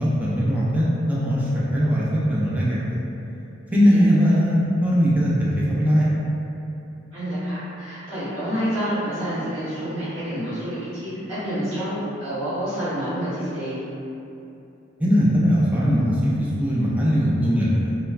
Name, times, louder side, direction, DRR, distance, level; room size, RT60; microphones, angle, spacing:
voice 1, 0.0-3.0 3.7-6.1 15.0-18.0, equal, 10° right, -8 dB, 0.4 m, -20 dB
voice 2, 7.1-13.8, equal, 90° right, -14 dB, 0.9 m, -28 dB
2.9 x 2.1 x 2.3 m, 2.8 s
head